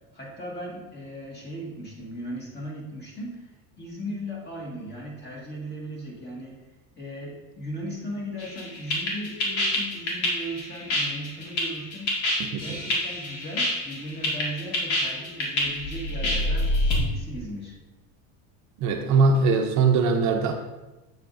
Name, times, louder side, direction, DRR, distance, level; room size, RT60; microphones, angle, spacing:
voice 1, 0.1-6.6 7.0-12.2 12.6-17.8, equal, 25° left, -2 dB, 1.8 m, -37 dB
sound 1, 8.4-17.0, left 1 dB, 85° left, 2.0 m, -26 dB
voice 2, 18.8-20.5, right 4 dB, 45° right, 4 dB, 0.6 m, -21 dB
7.8 x 7.3 x 2.6 m, 1.1 s
cardioid pair, 155°, 40 cm